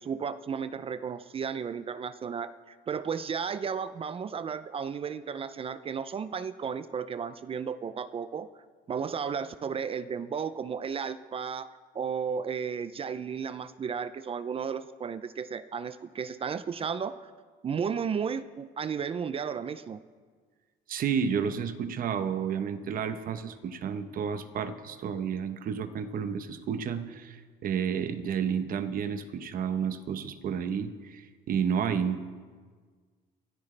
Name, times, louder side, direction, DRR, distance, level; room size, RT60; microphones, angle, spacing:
voice 1, 0.0-8.5 8.9-17.3 17.6-20.0, right 6 dB, 35° right, 13 dB, 0.5 m, -34 dB
voice 2, 20.9-32.3, right 7 dB, 55° right, 10 dB, 1.0 m, -31 dB
23.5 x 13.5 x 3.3 m, 1.6 s
cardioid pair, 110°, 17 cm